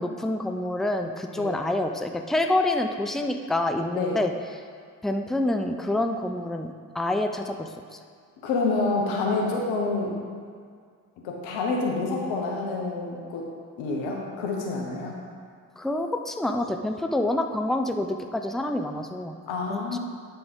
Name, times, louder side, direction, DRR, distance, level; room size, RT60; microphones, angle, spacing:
voice 1, 0.0-4.3 5.0-8.0 15.8-19.4 19.7-20.0, left 1 dB, ahead, 4 dB, 0.7 m, -27 dB
voice 2, 8.4-10.2 11.2-13.5 13.8-15.1 19.5-20.0, left 3 dB, 90° left, -1 dB, 1.2 m, -27 dB
10.5 x 3.9 x 5.4 m, 2.1 s
supercardioid pair, 40°, 45 cm